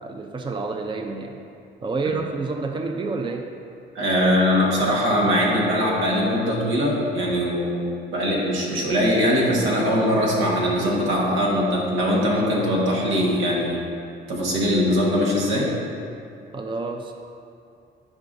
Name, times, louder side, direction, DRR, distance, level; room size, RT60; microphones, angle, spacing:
voice 1, 0.0-1.4 1.8-3.5 16.5-17.1, right 3 dB, 25° right, 4 dB, 0.5 m, -29 dB
voice 2, 3.9-13.8 14.3-15.7, equal, 90° right, -3 dB, 1.6 m, -21 dB
12.5 x 4.8 x 2.6 m, 2.5 s
cardioid pair, 90°, 20 cm